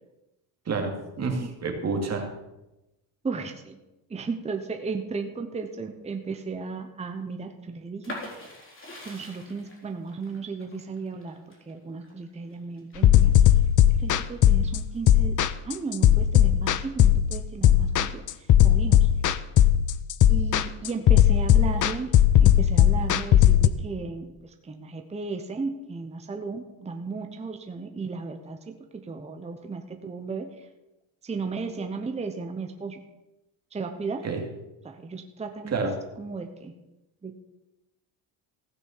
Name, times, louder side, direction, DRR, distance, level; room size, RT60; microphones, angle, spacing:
voice 1, 0.7-2.3 34.2-34.4 35.7-35.9, right 4 dB, 30° right, 3 dB, 2.5 m, -28 dB
voice 2, 3.2-3.8 4.1-8.2 9.0-11.4 11.7-13.3 14.0-15.3 15.6-19.1 20.3-22.1 22.4-30.7 31.2-33.0 33.7-34.3 34.8-35.9 36.2-36.7 37.2-37.4, right 4 dB, 15° right, 5 dB, 1.0 m, -35 dB
sound 1, 8.0-13.7 14.1-15.0, left 1 dB, 25° left, 3.9 m, -43 dB
sound 2, 13.0-23.7, left 11 dB, 40° left, 0.6 m, -18 dB
15.5 x 6.2 x 7.2 m, 0.97 s
cardioid pair, 135°, 48 cm